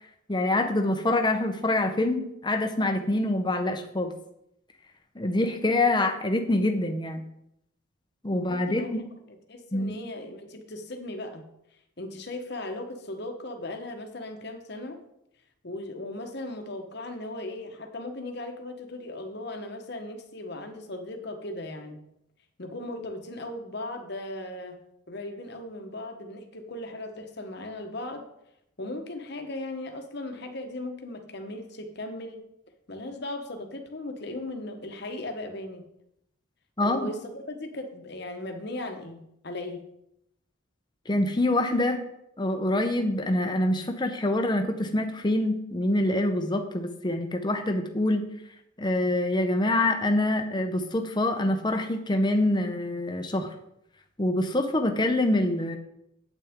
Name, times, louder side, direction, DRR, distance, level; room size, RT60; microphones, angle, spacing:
voice 1, 0.3-4.1 5.1-7.2 8.2-9.0 9.7-9.9 36.8-37.1 41.1-42.0 42.4-48.3 48.8-53.5 54.2-55.8, left 1 dB, 20° left, 6 dB, 0.8 m, -25 dB
voice 2, 8.3-8.9 9.3-11.4 12.0-15.0 15.6-22.0 22.6-24.8 25.1-28.3 28.8-32.4 32.9-35.8 36.8-39.8, left 1 dB, 50° left, 5 dB, 1.1 m, -37 dB
8.7 x 8.4 x 3.7 m, 0.80 s
head